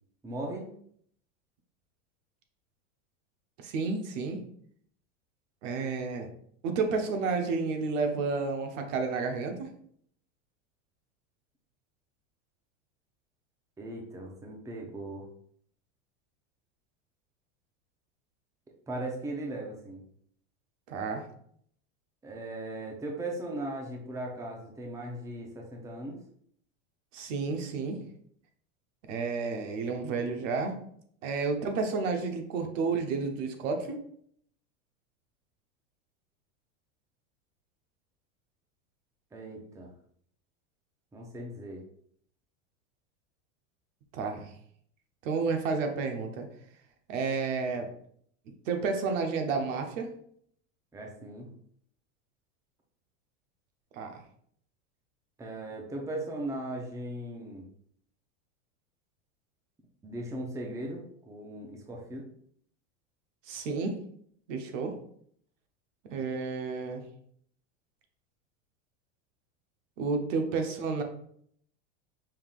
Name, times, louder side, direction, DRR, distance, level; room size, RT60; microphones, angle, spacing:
voice 1, 0.2-0.7 13.8-15.3 18.9-20.0 22.2-26.2 39.3-39.9 41.1-41.8 50.9-51.5 55.4-57.6 60.0-62.3, right 1 dB, 10° right, 0 dB, 0.6 m, -38 dB
voice 2, 3.6-4.4 5.6-6.3 6.6-9.7 20.9-21.2 27.1-28.0 29.1-30.8 31.2-34.0 44.1-44.5 45.2-46.5 47.1-47.9 48.7-50.1 53.9-54.2 63.5-64.0 64.5-65.0 66.1-67.0 70.0-71.0, right 4 dB, 75° right, 5 dB, 1.0 m, -31 dB
5.6 x 3.5 x 2.4 m, 0.65 s
supercardioid pair, 140°, 38 cm